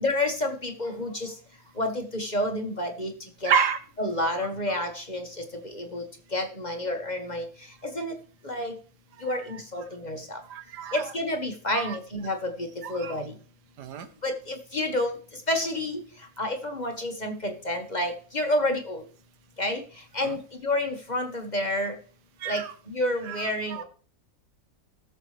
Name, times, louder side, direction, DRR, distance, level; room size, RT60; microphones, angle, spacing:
voice 1, 0.0-1.3 1.8-3.1 3.4-3.5 4.0-5.2 5.7-6.0 6.3-7.5 7.9-8.1 8.4-8.7 9.2-10.4 10.9-13.2 14.2-15.1 15.5-16.0 16.4-19.0 19.6-19.8 20.1-20.4 20.6-21.9 22.5-22.6 22.9-23.8, left 1 dB, 30° left, 4 dB, 1.2 m, -29 dB
voice 2, 3.4-3.8 9.1-9.9 10.5-11.1 11.7-12.0 12.8-13.2 13.8-14.1 20.2-20.4 22.4-22.7 23.2-23.8, right 7 dB, 85° right, 10 dB, 1.5 m, -30 dB
19.5 x 6.7 x 3.2 m, 0.43 s
omnidirectional pair, 1.7 m